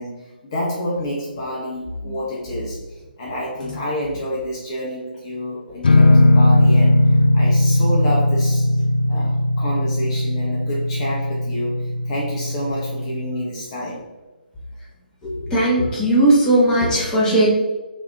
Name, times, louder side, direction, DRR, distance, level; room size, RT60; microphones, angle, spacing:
voice 1, 0.0-8.7 9.1-14.1, equal, 35° left, -5 dB, 1.1 m, -29 dB
sound 1, 5.8-13.4, left 1 dB, 70° left, 0.4 m, -17 dB
voice 2, 15.2-17.5, right 1 dB, 15° left, -6 dB, 1.3 m, -17 dB
4.7 x 2.9 x 3.5 m, 1.2 s
figure-of-eight pair, 140°, 5 cm